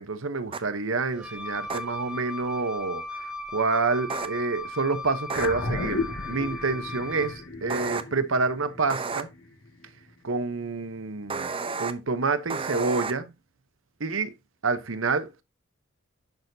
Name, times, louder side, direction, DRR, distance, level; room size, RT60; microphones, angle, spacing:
voice 1, 0.0-9.3 10.2-11.5 11.8-13.3 14.0-14.3 14.6-15.4, right 4 dB, 70° right, 0.9 m, -28 dB
sound 1, 0.5-0.6 1.7-1.8 4.1-4.3 5.3-5.5 7.7-8.0 8.9-9.2 11.3-11.9 12.5-13.1, right 4 dB, 25° right, 0.6 m, -31 dB
Wind instrument woodwind instrument, 1.1-7.5, left 2 dB, 5° right, 1.1 m, -37 dB
sound 2, 5.3-10.0, left 3 dB, 75° left, 2.0 m, -34 dB
10.5 x 6.4 x 2.7 m
head